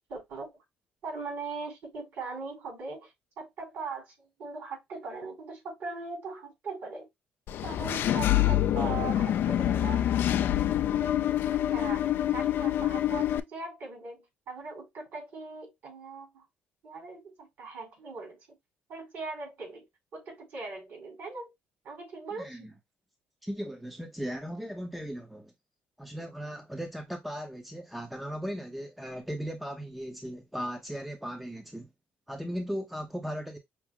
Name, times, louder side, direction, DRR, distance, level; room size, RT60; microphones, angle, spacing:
voice 1, 0.1-0.5 1.0-3.1 3.4-7.1 7.6-10.1 10.9-11.1 11.7-16.4 16.8-18.4 18.9-19.9 20.1-21.5 21.8-22.7, right 4 dB, 60° right, 3.6 m, -40 dB
Engine / Mechanisms, 7.5-13.4, left 12 dB, 65° left, 0.4 m, -26 dB
voice 2, 22.4-22.7 23.4-25.5 26.0-31.9 32.3-33.6, equal, ahead, 0.7 m, -37 dB
5.8 x 2.0 x 3.5 m
cardioid pair, 120°, 4 cm